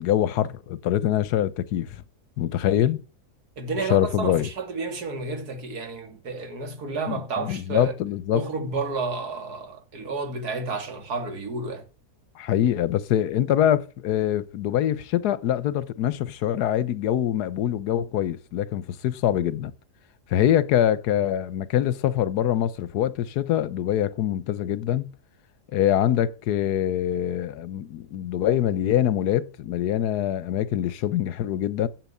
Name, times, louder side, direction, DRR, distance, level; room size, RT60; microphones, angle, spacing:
voice 1, 0.0-1.9 2.4-3.0 3.9-4.5 7.1-8.4 12.4-19.7 20.3-25.1 25.7-31.9, left 11 dB, 80° left, 1.3 m, -24 dB
voice 2, 3.6-7.9 8.3-11.8, right 3 dB, 70° right, 2.4 m, -31 dB
9.1 x 7.6 x 8.4 m
omnidirectional pair, 1.7 m